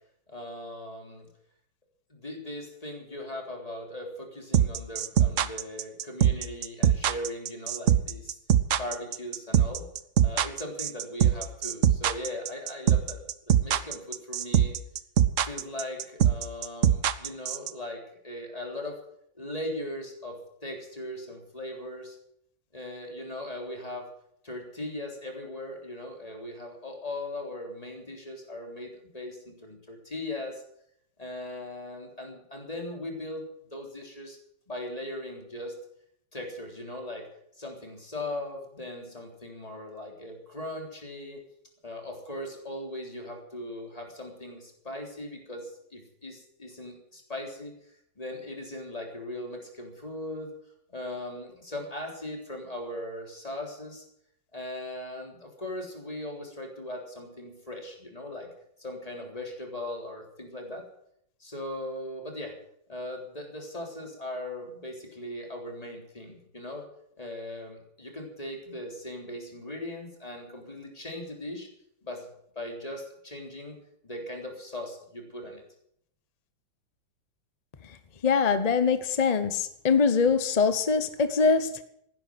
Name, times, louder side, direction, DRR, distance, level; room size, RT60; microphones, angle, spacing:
voice 1, 0.3-1.3 2.1-8.4 8.7-9.9 10.2-13.2 13.5-14.8 15.4-19.0 19.4-22.2 22.7-24.1 24.4-30.6 31.2-33.4 33.7-34.4 34.7-35.7 36.3-37.3 37.6-41.4 41.8-47.7 48.2-50.5 50.9-54.0 54.5-58.5 58.8-60.9 61.4-62.6 62.9-66.9 67.2-71.7 72.0-72.3 72.6-73.8 74.0-75.6, left 1 dB, 15° left, 2 dB, 3.6 m, -39 dB
sound 1, 4.5-17.7, right 10 dB, 60° right, 0.8 m, -22 dB
voice 2, 78.2-81.7, left 5 dB, 50° left, 11 dB, 0.4 m, -23 dB
16.5 x 10.0 x 7.8 m, 0.70 s
omnidirectional pair, 2.2 m